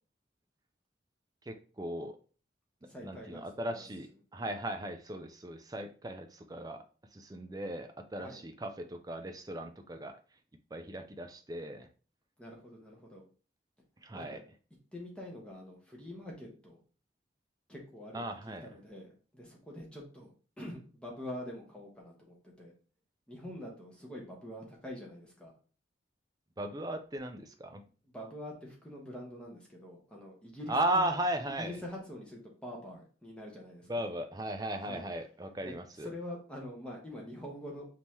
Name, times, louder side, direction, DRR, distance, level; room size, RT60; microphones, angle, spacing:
voice 1, 1.5-2.2 3.0-4.1 4.3-6.8 7.1-10.1 10.7-11.9 14.0-14.4 18.1-18.7 26.6-27.8 30.7-31.8 33.9-36.1, right 1 dB, 20° right, 7 dB, 0.4 m, -36 dB
voice 2, 2.8-3.4 8.2-8.4 12.4-13.2 14.1-14.4 14.9-16.8 17.7-20.3 20.6-22.7 23.3-25.5 28.0-31.1 31.6-34.1 34.8-35.1 35.6-37.9, left 1 dB, 5° left, -2 dB, 1.0 m, -45 dB
5.3 x 2.9 x 3.0 m, 0.38 s
head